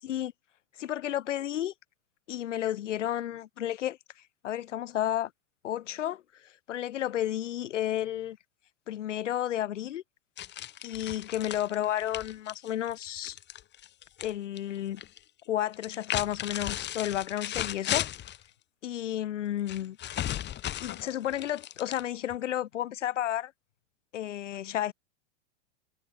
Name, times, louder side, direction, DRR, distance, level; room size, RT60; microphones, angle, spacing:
voice 1, 0.8-1.7 2.3-4.0 4.4-5.3 5.6-8.4 8.9-10.0 10.8-13.4 14.2-15.0 15.5-18.1 18.8-20.0 20.8-23.5 24.1-24.9, left 12 dB, 80° left, 6.7 m, -32 dB
sound 1, 10.4-14.3 14.6-15.2 15.7-18.4 19.7-22.4, left 12 dB, 30° left, 5.8 m, -36 dB
supercardioid pair, 135°, 36 cm